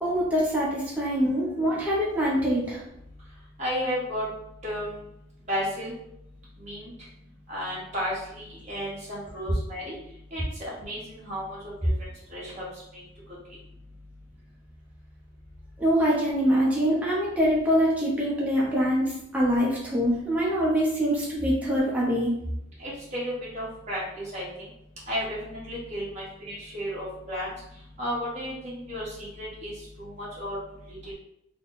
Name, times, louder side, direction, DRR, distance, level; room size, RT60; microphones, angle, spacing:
voice 1, 0.0-2.8 15.8-22.3, equal, 5° right, -6 dB, 0.6 m, -24 dB
voice 2, 3.6-4.2 4.6-5.0 5.5-5.9 6.6-6.9 7.5-9.9 10.3-11.7 12.3-12.6 22.8-24.4 25.1-27.5 28.0-29.1 29.4-29.7 30.0-30.6 31.1-31.2, equal, 35° right, -7 dB, 1.4 m, -33 dB
3.5 x 2.2 x 3.9 m, 0.80 s
head